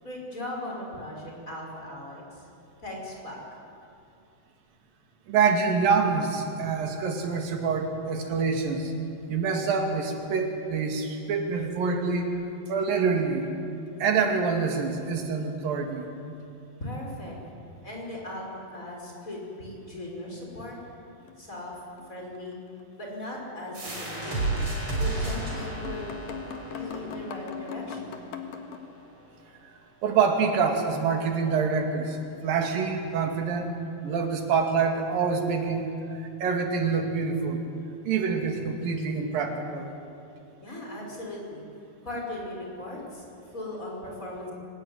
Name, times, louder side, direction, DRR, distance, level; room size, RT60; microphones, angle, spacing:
voice 1, 0.0-2.5 2.8-3.4 16.8-17.4 17.8-20.8 21.4-21.8 22.1-22.6 23.0-24.7 25.0-26.1 26.7-28.2 40.6-41.6 42.0-44.5, left 1 dB, 20° left, -2 dB, 5.8 m, -38 dB
voice 2, 5.3-8.9 9.3-12.4 12.7-13.4 14.0-16.1 30.0-32.2 32.4-33.7 34.0-35.8 36.1-37.6 38.0-39.9, right 5 dB, 90° right, 4 dB, 4.0 m, -26 dB
sound 1, 21.2-22.5 22.8-22.9 24.3-24.5 25.1-25.2 25.5-28.9, left 7 dB, 85° left, 3.3 m, -40 dB
sound 2, 23.7-29.1, right 2 dB, 40° right, 6.2 m, -33 dB
24.5 x 20.0 x 9.7 m, 2.7 s
omnidirectional pair, 3.9 m